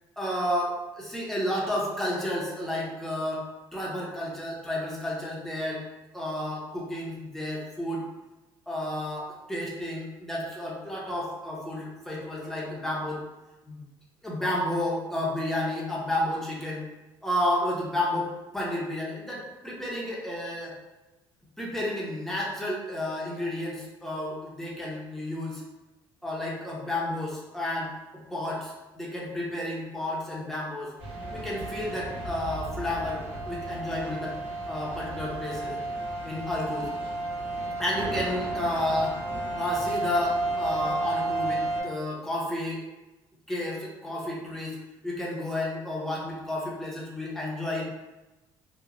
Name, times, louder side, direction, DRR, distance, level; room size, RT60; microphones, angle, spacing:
voice 1, 0.2-5.8 6.1-8.0 8.7-13.2 13.7-13.8 14.2-16.8 17.2-18.3 18.5-20.7 21.6-25.6 26.2-30.9 31.3-34.4 34.7-35.7 36.2-36.9 37.8-39.2 39.6-42.8 43.5-44.8 45.0-47.8, left 1 dB, 5° left, -5 dB, 0.6 m, -31 dB
sound 1, 31.0-41.8, right 2 dB, 65° right, 1.3 m, -32 dB
2.9 x 2.0 x 2.5 m, 1.1 s
cardioid pair, 115°, 10 cm